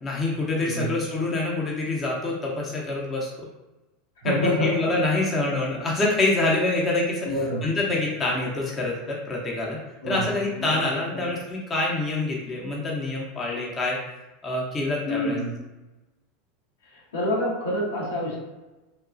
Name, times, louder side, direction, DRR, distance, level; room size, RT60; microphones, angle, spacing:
voice 1, 0.0-3.3 4.2-7.2 7.6-9.8 10.1-14.0 14.4-15.4, left 2 dB, 25° left, -3 dB, 0.6 m, -26 dB
voice 2, 0.6-1.0 4.2-4.7 5.1-5.2 7.2-7.6 10.0-10.9 11.1-11.3 15.0-15.5 16.9-18.4, equal, 85° left, -5 dB, 1.0 m, -28 dB
2.9 x 2.2 x 2.5 m, 1.1 s
hypercardioid pair, 105°, 0 cm